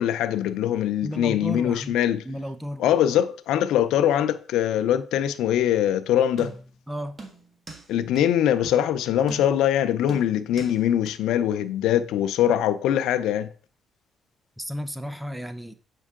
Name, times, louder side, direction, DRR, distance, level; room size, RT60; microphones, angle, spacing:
voice 1, 0.0-2.2 2.8-6.5 7.9-13.5, left 10 dB, 90° left, 0.5 m, -22 dB
voice 2, 1.0-2.0 2.2-2.8 6.9-7.2 14.6-15.7, equal, 5° right, 0.6 m, -33 dB
sound 1, 6.4-6.8 7.2-7.9 8.2-8.3 8.6-8.8 9.3-9.7 10.1-10.8 11.1-11.2, right 3 dB, 30° right, 1.8 m, -40 dB
7.2 x 5.5 x 3.7 m
cardioid pair, 90°, 0 cm